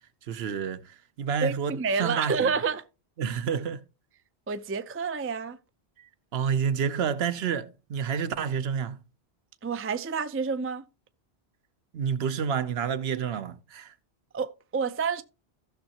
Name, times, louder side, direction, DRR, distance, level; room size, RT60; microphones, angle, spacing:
voice 1, 0.2-2.5 3.2-3.8 6.0-9.0 11.9-13.9, right 7 dB, 70° right, 0.9 m, -29 dB
voice 2, 1.4-2.8 4.5-5.6 9.6-10.8 14.3-15.2, right 5 dB, 20° right, 0.3 m, -29 dB
15.0 x 6.4 x 2.9 m
omnidirectional pair, 1.1 m